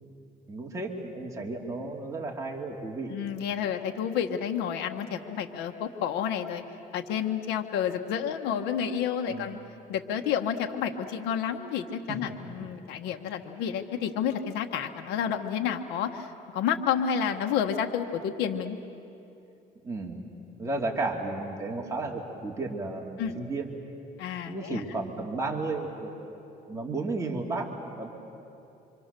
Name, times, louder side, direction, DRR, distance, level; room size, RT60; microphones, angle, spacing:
voice 1, 0.5-3.1 9.3-9.6 12.3-12.4 12.6-12.7 19.8-20.2 20.6-23.7 24.4-26.2 26.7-28.1, right 2 dB, 20° right, -1 dB, 2.5 m, -33 dB
voice 2, 3.1-6.6 6.9-9.6 9.9-18.8 23.2-23.4 24.2-24.8, left 8 dB, 90° left, 5 dB, 1.3 m, -30 dB
27.0 x 24.5 x 6.7 m, 2.8 s
cardioid pair, 110°, 17 cm